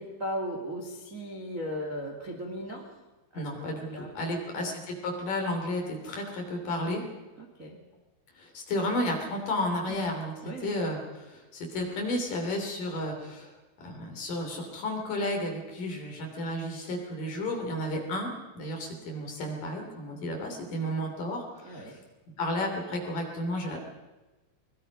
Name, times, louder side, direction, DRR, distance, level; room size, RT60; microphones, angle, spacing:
voice 1, 0.0-3.0 3.3-3.4 3.9-4.6 7.4-7.8 9.8-10.0 10.4-10.7 21.6-22.0, equal, 30° right, 1 dB, 1.5 m, -37 dB
voice 2, 3.3-7.0 8.3-10.3 10.6-13.5 13.8-22.0 22.4-23.8, left 1 dB, 50° left, 2 dB, 4.5 m, -32 dB
23.0 x 21.5 x 5.4 m, 1.1 s
omnidirectional pair, 5.5 m